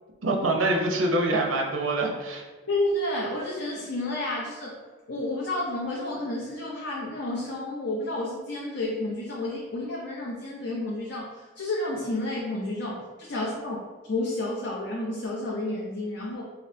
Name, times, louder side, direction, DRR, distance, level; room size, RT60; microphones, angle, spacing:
voice 1, 0.2-2.5, right 2 dB, 85° right, 1 dB, 0.7 m, -25 dB
voice 2, 2.7-4.7 5.1-13.8 14.1-16.5, left 1 dB, 60° left, -4 dB, 0.6 m, -30 dB
5.6 x 2.0 x 2.7 m, 1.3 s
head